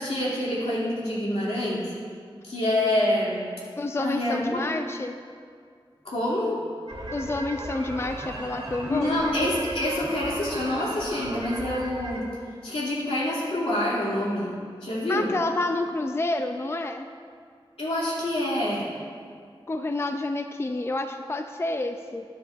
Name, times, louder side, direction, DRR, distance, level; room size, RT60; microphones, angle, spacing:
voice 1, 0.0-1.9 2.4-3.4 4.0-4.6 6.0-6.6 8.9-12.3 12.6-14.5 14.8-15.3 17.8-18.9, left 1 dB, 90° left, -7 dB, 2.6 m, -26 dB
voice 2, 3.8-5.1 7.1-9.1 15.1-17.1 19.7-22.2, left 2 dB, 25° left, 7 dB, 0.4 m, -29 dB
sound 1, 6.9-12.2, right 1 dB, 85° right, 2.3 m, -36 dB
13.0 x 10.0 x 2.5 m, 2.1 s
wide cardioid pair, 75°, 10 cm